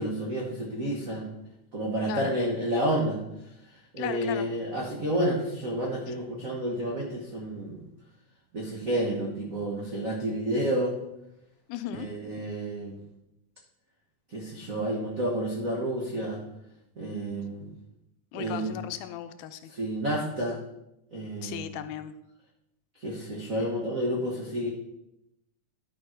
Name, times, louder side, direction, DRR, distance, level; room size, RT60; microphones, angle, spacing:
voice 1, 0.0-1.4 1.7-3.2 3.9-7.8 8.5-10.9 11.9-13.0 14.3-16.4 17.0-17.7 18.3-18.8 19.7-20.6 21.1-21.7 23.0-24.7, right 1 dB, 75° right, -2 dB, 0.7 m, -30 dB
voice 2, 4.0-4.5 6.1-6.2 11.7-12.1 18.3-19.7 21.4-22.1, left 11 dB, 80° left, 10 dB, 2.0 m, -36 dB
12.0 x 5.1 x 4.4 m, 0.86 s
omnidirectional pair, 3.6 m